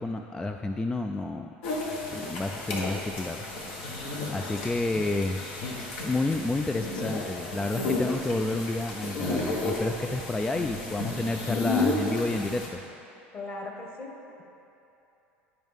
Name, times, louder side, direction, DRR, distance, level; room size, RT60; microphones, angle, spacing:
voice 1, 0.0-1.5 2.1-3.4 4.3-5.4 6.0-12.8, left 2 dB, 10° left, 5 dB, 0.3 m, -30 dB
sound 1, 1.6-12.7, left 2 dB, 70° left, 1.4 m, -32 dB
voice 2, 4.3-4.6 13.3-14.1, left 2 dB, 40° left, 0 dB, 1.6 m, -39 dB
10.5 x 5.4 x 3.6 m, 2.9 s
hypercardioid pair, 85°, 6 cm